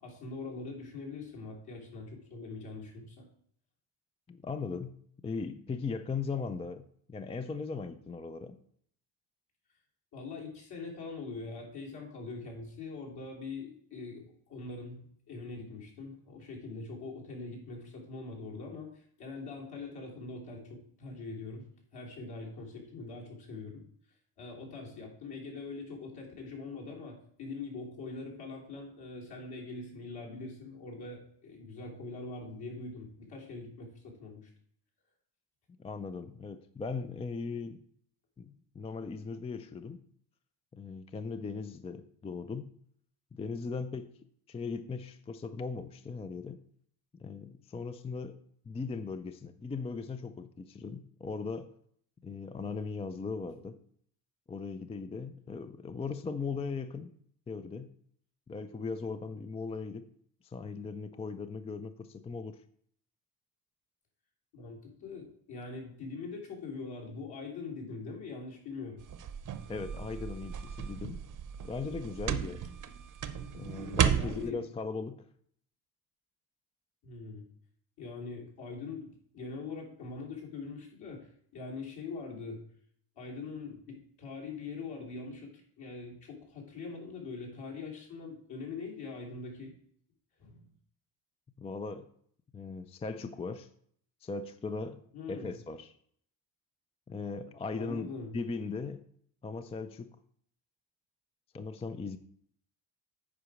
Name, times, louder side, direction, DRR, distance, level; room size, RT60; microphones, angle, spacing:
voice 1, 0.0-3.3 10.1-23.8 24.4-34.5 64.5-69.0 74.1-74.6 77.0-77.4 78.0-82.6 83.2-89.7 90.4-90.7 95.1-95.5 97.8-98.3, left 3 dB, 60° left, 3.2 m, -43 dB
voice 2, 4.3-4.9 5.2-8.6 35.7-37.8 38.4-40.0 40.7-42.7 43.3-44.2 44.5-46.6 47.1-48.4 48.7-51.7 52.2-53.8 54.5-57.2 57.5-57.9 58.5-60.1 60.4-62.6 69.7-71.2 71.7-72.7 73.5-75.2 91.6-92.1 92.5-93.7 94.2-95.9 97.1-98.1 98.3-99.1 99.4-100.2 101.5-102.2, left 4 dB, 15° left, 0.3 m, -38 dB
sound 1, 69.0-74.5, right 8 dB, 45° right, 0.8 m, -34 dB
8.3 x 4.9 x 6.0 m
cardioid pair, 125°, 44 cm